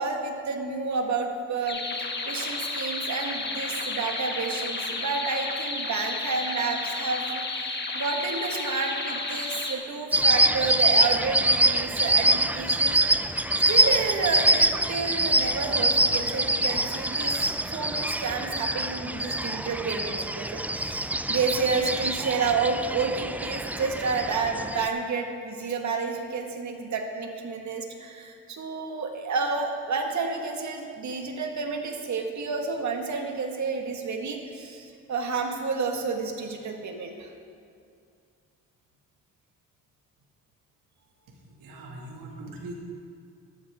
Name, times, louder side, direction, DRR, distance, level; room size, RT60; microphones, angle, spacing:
voice 1, 0.0-1.8 2.3-13.0 13.6-37.3, right 4 dB, 60° right, 3 dB, 1.8 m, -30 dB
sound 1, 1.7-9.7, left 3 dB, 30° left, 1.6 m, -32 dB
sound 2, 10.1-24.9, right 1 dB, 5° right, 0.4 m, -25 dB
voice 2, 41.0-42.7, right 2 dB, 80° right, -1 dB, 2.3 m, -42 dB
13.0 x 12.5 x 3.7 m, 2.3 s
cardioid pair, 75°, 33 cm